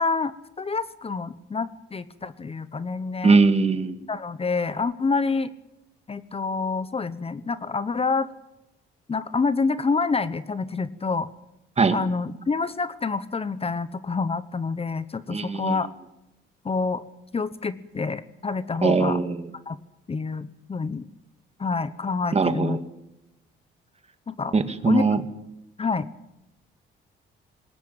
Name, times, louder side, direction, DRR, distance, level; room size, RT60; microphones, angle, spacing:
voice 1, 0.0-3.4 4.1-5.5 6.1-8.3 9.1-11.3 11.9-15.9 16.6-17.0 17.3-19.2 19.7-19.8 20.1-21.1 21.6-22.8 24.3-24.6 24.9-25.1 25.8-26.1, left 4 dB, 30° left, 14 dB, 1.0 m, -27 dB
voice 2, 3.2-4.0 11.8-12.0 15.3-15.8 18.8-19.4 22.3-22.8 24.5-25.2, right 4 dB, 30° right, 10 dB, 2.0 m, -21 dB
20.5 x 18.0 x 8.9 m, 0.91 s
cardioid pair, 90°, 20 cm